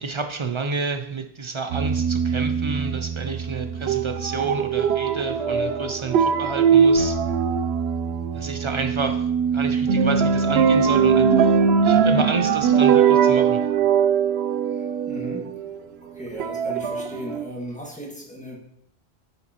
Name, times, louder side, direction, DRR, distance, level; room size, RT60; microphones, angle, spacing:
voice 1, 0.0-7.2 8.3-13.6, right 4 dB, 50° right, 6 dB, 0.3 m, -30 dB
sound 1, 1.7-15.8 16.3-17.4, right 6 dB, 75° right, 0.8 m, -21 dB
voice 2, 14.7-15.5 16.0-18.6, equal, 5° left, -3 dB, 1.7 m, -37 dB
8.1 x 7.0 x 2.9 m, 0.73 s
omnidirectional pair, 1.1 m